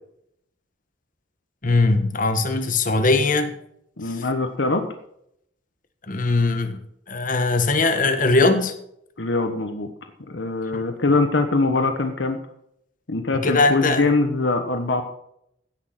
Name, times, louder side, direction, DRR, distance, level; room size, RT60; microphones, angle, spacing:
voice 1, 1.6-3.5 4.1-4.2 6.1-6.8 7.1-8.7 10.7-10.8 13.3-14.1, left 3 dB, 45° left, 8 dB, 1.4 m, -20 dB
voice 2, 4.0-4.8 9.2-9.9 10.3-12.4 13.1-15.0, left 3 dB, 70° left, 6 dB, 1.2 m, -22 dB
16.5 x 6.5 x 5.9 m, 0.73 s
head